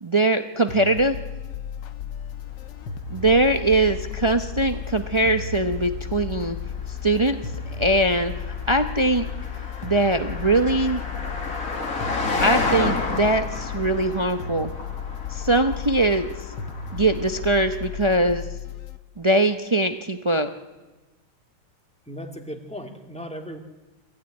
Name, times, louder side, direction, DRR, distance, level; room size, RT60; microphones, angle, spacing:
voice 1, 0.0-1.1 3.1-6.6 7.0-7.4 7.8-9.3 9.8-11.0 12.4-14.7 15.3-16.3 16.9-18.4 19.2-20.5, right 2 dB, 45° right, 7 dB, 0.3 m, -21 dB
sound 1, 0.7-19.0, left 7 dB, 75° left, 1.6 m, -35 dB
Car passing by, 2.3-18.0, left 4 dB, 45° left, 2.2 m, -33 dB
voice 2, 22.1-23.6, equal, 5° left, 4 dB, 1.8 m, -36 dB
24.0 x 15.5 x 9.8 m, 1.2 s
omnidirectional pair, 2.0 m